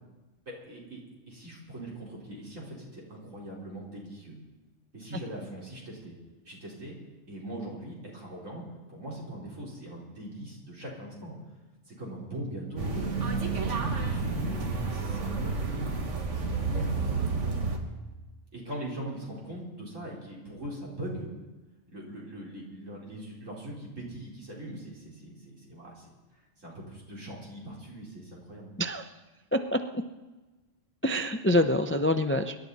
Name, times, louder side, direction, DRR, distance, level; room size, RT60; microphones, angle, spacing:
voice 1, 0.5-1.0 1.3-4.4 4.9-6.1 6.4-7.0 7.3-11.4 11.9-15.9 16.6-17.3 18.5-21.3 21.9-26.2 26.6-28.7, right 1 dB, 90° right, -4 dB, 4.6 m, -40 dB
sound 1, 12.8-17.8, right 4 dB, 70° right, 1.8 m, -30 dB
voice 2, 29.5-30.0 31.0-32.6, left 1 dB, 20° left, 8 dB, 0.3 m, -26 dB
24.5 x 11.5 x 4.1 m, 1.2 s
omnidirectional pair, 1.3 m